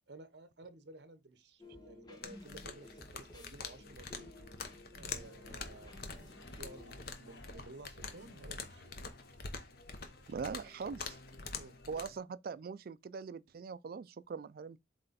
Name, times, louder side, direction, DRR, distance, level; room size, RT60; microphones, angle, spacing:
voice 1, 0.1-4.3 4.9-5.9 6.6-9.1 10.2-10.3 11.5-11.8, right 2 dB, 75° right, 0.9 m, -54 dB
sound 1, 1.6-6.9, left 1 dB, 25° left, 1.3 m, -54 dB
sound 2, 2.2-12.1, left 4 dB, 55° left, 1.0 m, -46 dB
sound 3, 5.1-12.2, left 1 dB, 80° left, 1.3 m, -58 dB
voice 2, 10.3-11.2 11.9-14.8, right 5 dB, 55° right, 0.3 m, -42 dB
7.9 x 3.3 x 4.1 m
head